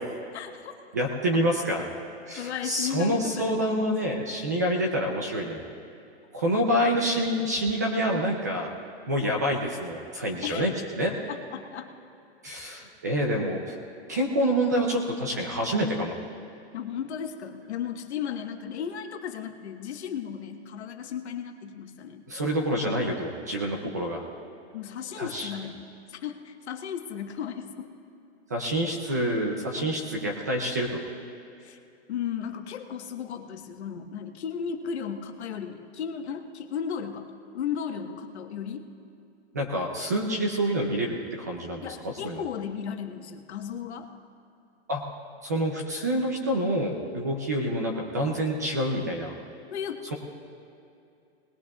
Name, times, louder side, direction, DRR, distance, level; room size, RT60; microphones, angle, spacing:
voice 1, 0.3-0.7 2.4-4.3 10.4-10.7 11.3-11.9 16.7-22.2 23.8-24.1 24.7-27.9 31.6-31.8 32.1-38.8 41.8-44.1 49.7-50.1, left 8 dB, 75° left, 4 dB, 1.3 m, -35 dB
voice 2, 0.9-1.8 2.3-5.6 6.3-8.7 9.1-11.1 12.4-13.8 14.1-16.1 22.3-24.2 25.2-25.5 28.5-31.0 39.5-42.4 44.9-45.0 45.4-49.3, equal, 15° right, 1 dB, 0.4 m, -27 dB
20.0 x 19.5 x 2.3 m, 2.5 s
hypercardioid pair, 180°, 33 cm